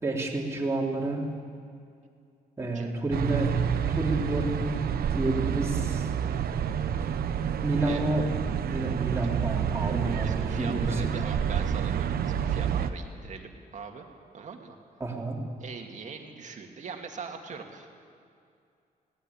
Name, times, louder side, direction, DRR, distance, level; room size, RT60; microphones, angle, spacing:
voice 1, 0.0-1.3 2.6-6.1 7.6-8.3 8.6-11.0 15.0-15.4, right 2 dB, 15° right, -3 dB, 3.5 m, -30 dB
voice 2, 2.7-3.2 7.8-8.0 9.8-14.1 14.3-14.8 15.6-17.9, right 5 dB, 50° right, 3 dB, 2.4 m, -42 dB
sound 1, 3.1-12.9, right 8 dB, 80° right, 1.0 m, -28 dB
21.5 x 17.5 x 8.7 m, 2.4 s
wide cardioid pair, 135°, 16 cm